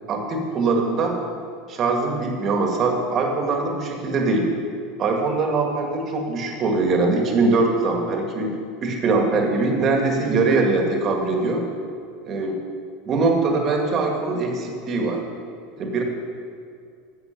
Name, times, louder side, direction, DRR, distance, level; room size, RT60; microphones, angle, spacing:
voice 1, 0.1-1.2 1.7-4.5 5.0-8.6 8.8-11.6 12.3-12.6 13.1-15.2 15.8-16.0, right 3 dB, 35° right, 2 dB, 1.9 m, -22 dB
10.5 x 7.9 x 6.0 m, 2.3 s
supercardioid pair, 135°, 0 cm